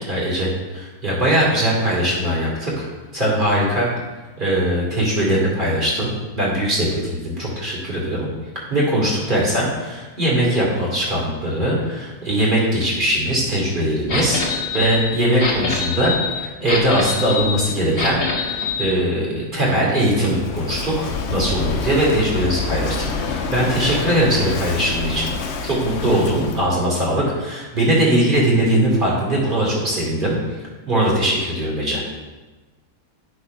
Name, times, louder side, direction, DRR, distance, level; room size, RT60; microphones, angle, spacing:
voice 1, 0.1-2.9 3.1-3.9 4.4-6.1 6.4-8.3 8.5-25.3 25.6-30.4 30.8-32.0, right 1 dB, 30° right, -4 dB, 3.0 m, -20 dB
sound 1, 14.1-18.9, left 4 dB, 40° left, 1.4 m, -25 dB
Walk footsteps / Wind / Waves surf, 20.1-26.7, left 4 dB, 55° left, 0.8 m, -27 dB
8.9 x 6.6 x 5.5 m, 1.2 s
omnidirectional pair, 1.8 m